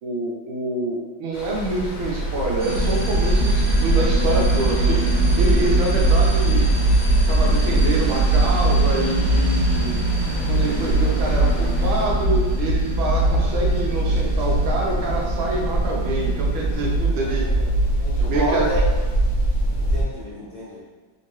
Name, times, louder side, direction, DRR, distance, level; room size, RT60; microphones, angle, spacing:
voice 1, 0.0-6.7 7.3-10.0 10.5-17.4 18.2-18.7, right 2 dB, 90° right, -2 dB, 1.5 m, -26 dB
Stream, 1.3-12.1, right 1 dB, 85° left, 1.4 m, -31 dB
sound 1, 2.6-17.1, right 1 dB, 55° right, 1.1 m, -30 dB
sound 2, 2.7-20.0, right 2 dB, 55° left, 0.5 m, -21 dB
voice 2, 17.2-17.7 18.0-18.8 19.8-20.8, equal, 30° left, -12 dB, 1.3 m, -30 dB
3.6 x 2.8 x 3.0 m, 1.4 s
omnidirectional pair, 2.1 m